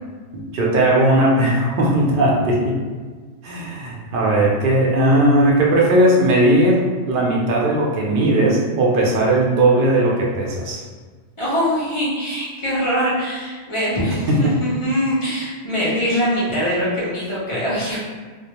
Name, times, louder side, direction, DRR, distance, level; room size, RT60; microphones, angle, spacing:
voice 1, 0.3-2.8 3.4-10.8 14.3-14.5, right 1 dB, 60° right, -3 dB, 0.5 m, -17 dB
voice 2, 11.4-18.0, equal, 55° left, -8 dB, 0.3 m, -22 dB
2.2 x 2.1 x 2.8 m, 1.5 s
omnidirectional pair, 1.4 m